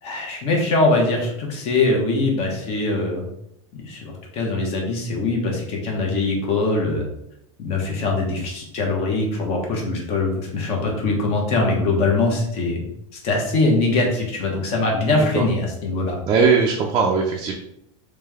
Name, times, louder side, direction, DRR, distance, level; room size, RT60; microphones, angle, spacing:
voice 1, 0.0-3.2 3.7-7.1 7.6-12.8 13.1-16.2, left 2 dB, 35° left, 0 dB, 1.1 m, -22 dB
voice 2, 15.1-15.4 16.3-17.5, right 5 dB, 25° right, 0 dB, 0.5 m, -19 dB
3.3 x 3.2 x 3.5 m, 0.76 s
supercardioid pair, 150°, 17 cm